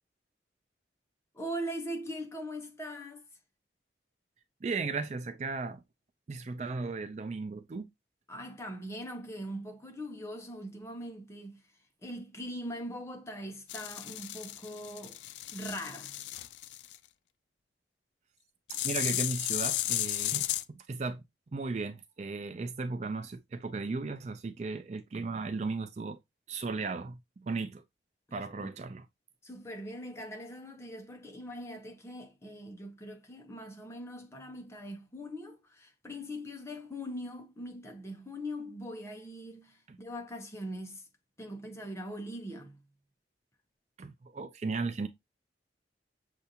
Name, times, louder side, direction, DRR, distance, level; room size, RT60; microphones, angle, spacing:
voice 1, 1.3-3.3 8.3-15.2 15.5-16.3 28.3-28.7 29.4-41.1 41.4-42.9, equal, 15° left, 0.7 m, -41 dB
voice 2, 4.6-5.8 6.3-7.9 18.7-21.2 21.5-26.2 26.5-27.8 28.3-29.1 39.9-40.0 44.0-45.1, right 3 dB, 40° right, 0.4 m, -36 dB
sound 1, 13.7-17.0 18.7-20.6, left 14 dB, 75° left, 0.3 m, -34 dB
6.7 x 2.5 x 2.8 m
head